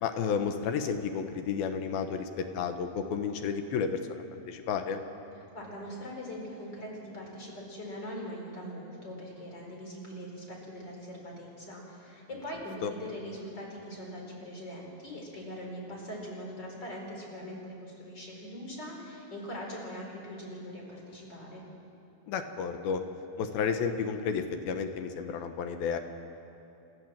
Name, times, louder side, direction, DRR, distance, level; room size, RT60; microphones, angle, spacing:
voice 1, 0.0-5.0 12.8-12.9 22.3-23.0 23.4-26.0, left 6 dB, 75° left, 7 dB, 2.7 m, -32 dB
voice 2, 5.5-21.6, equal, 25° left, -1 dB, 4.6 m, -42 dB
29.0 x 14.0 x 7.4 m, 2.8 s
omnidirectional pair, 4.5 m